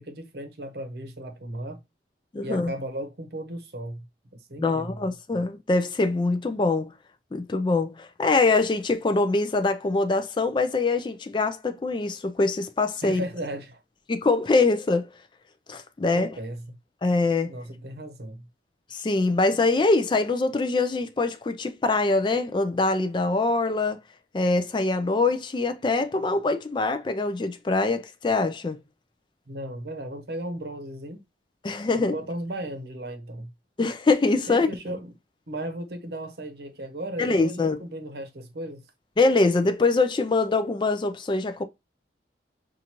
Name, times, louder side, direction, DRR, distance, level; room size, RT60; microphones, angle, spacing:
voice 1, 0.0-1.8 2.4-4.1 4.5-5.1 13.0-13.8 16.1-16.7 17.5-18.5 29.5-31.2 31.9-33.5 34.5-35.1 35.5-38.8, right 1 dB, 60° right, 0.8 m, -36 dB
voice 2, 2.3-2.7 4.6-6.9 7.3-13.2 14.1-15.1 15.7-16.3 17.0-17.5 18.9-24.0 24.3-28.8 31.6-32.1 33.8-34.7 37.2-37.8 39.2-41.6, left 3 dB, 25° left, 0.3 m, -23 dB
5.6 x 2.5 x 2.9 m
head